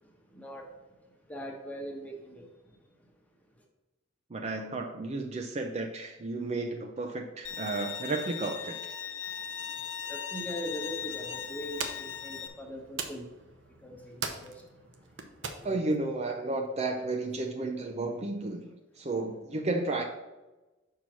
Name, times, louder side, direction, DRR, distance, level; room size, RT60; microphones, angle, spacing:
voice 1, 0.0-0.7 1.3-2.7 9.3-13.3 13.8-14.7 15.0-16.1, equal, 10° left, 1 dB, 1.2 m, -42 dB
voice 2, 4.3-8.9 15.6-20.0, right 2 dB, 35° right, 3 dB, 0.6 m, -33 dB
Bowed string instrument, 7.4-12.5, left 8 dB, 80° left, 0.7 m, -38 dB
sound 1, 10.9-16.1, right 5 dB, 70° right, 0.8 m, -42 dB
5.6 x 4.7 x 6.1 m, 1.1 s
head